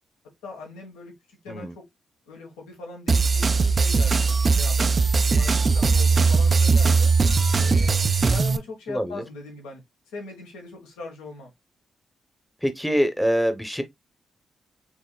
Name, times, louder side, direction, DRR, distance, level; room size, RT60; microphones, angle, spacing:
voice 1, 0.4-1.8 2.3-4.3 4.6-7.1 7.6-9.8 10.1-11.5, left 3 dB, 90° left, 1.3 m, -40 dB
sound 1, 3.1-8.6, right 4 dB, 45° right, 0.4 m, -19 dB
voice 2, 8.9-9.2 12.6-13.8, equal, ahead, 0.8 m, -24 dB
4.5 x 3.0 x 2.3 m
supercardioid pair, 45°, 0 cm